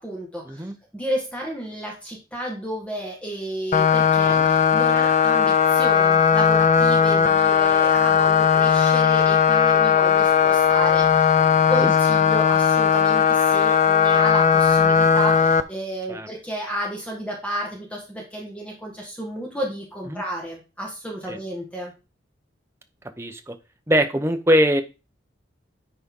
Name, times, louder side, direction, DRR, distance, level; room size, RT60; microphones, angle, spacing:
voice 1, 0.0-11.4 11.7-21.9, right 1 dB, 5° left, -2 dB, 1.7 m, -32 dB
sound 1, 3.7-15.6, left 7 dB, 40° left, 0.5 m, -18 dB
voice 2, 23.2-23.6 23.9-24.8, equal, 15° right, 6 dB, 0.7 m, -22 dB
9.8 x 4.3 x 3.7 m, 0.30 s
head